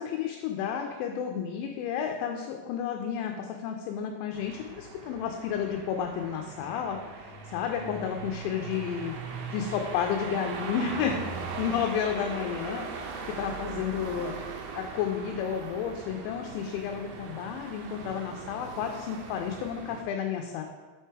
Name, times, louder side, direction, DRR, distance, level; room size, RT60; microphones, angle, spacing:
voice 1, 0.0-9.1 9.5-11.1 11.6-12.9 13.3-14.4 14.7-20.6, left 8 dB, 85° left, 3 dB, 2.9 m, -31 dB
sound 1, 4.3-20.0, right 4 dB, 80° right, 2.6 m, -40 dB
6.5 x 4.5 x 4.5 m, 1.3 s
omnidirectional pair, 5.4 m